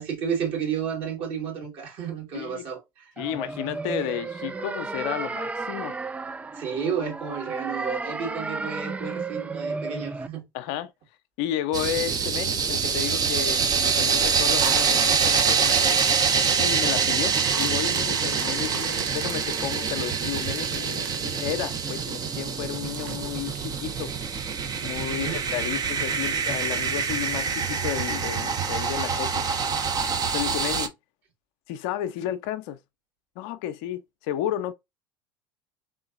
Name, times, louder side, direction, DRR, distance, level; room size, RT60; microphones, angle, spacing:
voice 1, 0.0-3.1 6.5-10.5 25.1-25.4, right 7 dB, 50° right, 2.2 m, -31 dB
voice 2, 3.2-6.0 10.5-10.9 11.4-16.0 16.6-24.1 24.8-29.5 30.1-30.9 31.7-32.8 33.4-34.7, left 11 dB, 60° left, 0.6 m, -32 dB
sound 1, 3.2-10.3, right 3 dB, 10° right, 0.3 m, -33 dB
sound 2, 11.7-30.9, right 6 dB, 35° right, 0.8 m, -25 dB
sound 3, 14.6-21.9 22.4-22.5 22.9-24.2 24.7-24.8, right 7 dB, 70° right, 0.8 m, -38 dB
3.7 x 3.7 x 2.5 m
hypercardioid pair, 75°, 12 cm